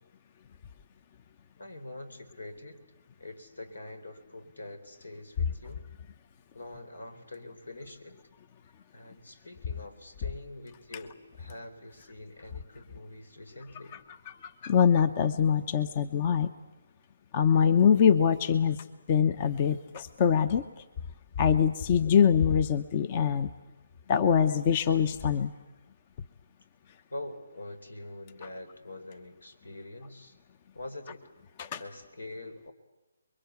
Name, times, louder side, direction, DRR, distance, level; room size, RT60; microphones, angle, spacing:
voice 1, 1.6-2.8 3.2-5.8 6.5-8.2 8.9-14.0 27.1-30.4 30.7-31.2 31.8-32.7, left 2 dB, 85° left, 9 dB, 4.2 m, -44 dB
voice 2, 14.3-16.5 17.3-20.8 21.4-23.5 24.1-25.5 31.6-31.8, left 7 dB, 30° left, 14 dB, 0.9 m, -24 dB
29.5 x 22.5 x 8.4 m, 1.1 s
figure-of-eight pair, 150°, 0 cm